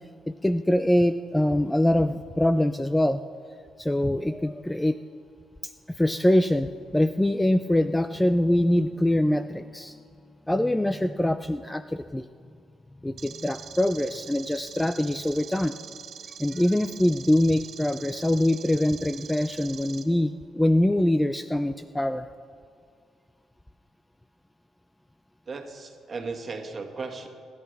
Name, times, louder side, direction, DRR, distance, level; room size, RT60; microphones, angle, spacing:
voice 1, 0.3-3.2 3.8-5.0 5.9-10.0 10.5-12.2 13.0-15.7 16.4-22.3, left 1 dB, 10° left, 10 dB, 0.4 m, -24 dB
sound 1, 13.2-20.0, right 8 dB, 65° right, 1.0 m, -43 dB
voice 2, 25.5-27.3, right 4 dB, 40° right, 3 dB, 1.8 m, -36 dB
26.5 x 11.0 x 3.5 m, 2.1 s
cardioid pair, 90°, 0 cm